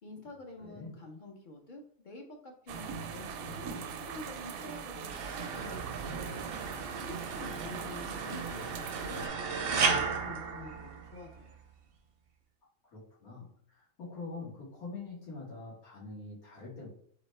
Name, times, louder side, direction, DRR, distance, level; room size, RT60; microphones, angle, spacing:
voice 1, 0.0-6.3 6.7-11.6, left 2 dB, 50° left, 2 dB, 0.6 m, -48 dB
voice 2, 0.6-0.9 12.9-16.9, left 3 dB, 90° left, -7 dB, 2.3 m, -44 dB
sound 1, 2.7-9.3, right 6 dB, 80° right, 1.0 m, -41 dB
sound 2, 5.1-11.4, right 5 dB, 60° right, 0.6 m, -35 dB
4.1 x 3.4 x 3.2 m, 0.62 s
omnidirectional pair, 1.5 m